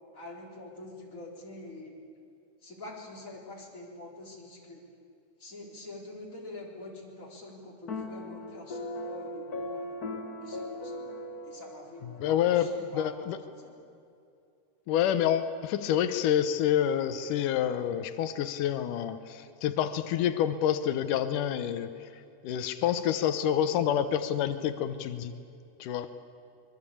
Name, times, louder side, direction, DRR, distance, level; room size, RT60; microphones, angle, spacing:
voice 1, 0.1-1.9 2.6-4.8 5.4-9.8 10.4-13.8, left 2 dB, 25° left, -1 dB, 4.3 m, -46 dB
sound 1, 7.9-12.3, left 2 dB, 40° left, 1.4 m, -38 dB
voice 2, 12.2-13.4 14.9-21.9 22.4-25.3 25.8-26.1, left 10 dB, 90° left, 10 dB, 2.5 m, -28 dB
25.0 x 22.0 x 8.7 m, 2.5 s
omnidirectional pair, 3.6 m